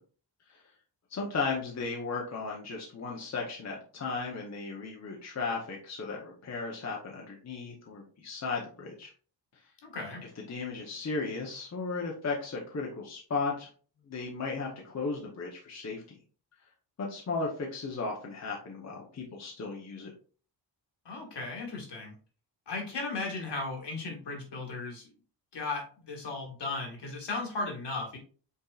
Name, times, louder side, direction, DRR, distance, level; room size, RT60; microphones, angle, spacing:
voice 1, 1.1-9.1 10.5-13.7 14.1-16.0 17.0-20.1, left 4 dB, 35° left, -1 dB, 0.9 m, -35 dB
voice 2, 9.8-10.2 21.1-22.1 22.7-25.1 25.5-28.2, left 3 dB, 65° left, 0 dB, 1.8 m, -36 dB
5.4 x 3.6 x 2.4 m, 0.41 s
wide cardioid pair, 115°, 44 cm